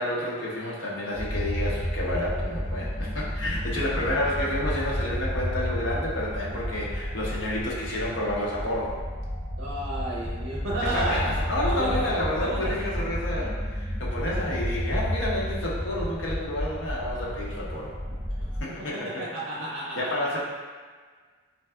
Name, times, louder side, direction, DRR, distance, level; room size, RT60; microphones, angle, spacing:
voice 1, 0.0-9.0 10.9-17.9 18.6-19.2 19.6-19.7 19.9-20.4, left 1 dB, 65° left, -5 dB, 0.8 m, -30 dB
sound 1, 1.1-18.6, equal, 5° left, 1.5 m, -31 dB
voice 2, 9.6-11.3 11.7-12.9 18.4-18.5 18.9-20.0, right 1 dB, 65° right, -5 dB, 0.6 m, -32 dB
4.0 x 3.3 x 2.3 m, 1.5 s
head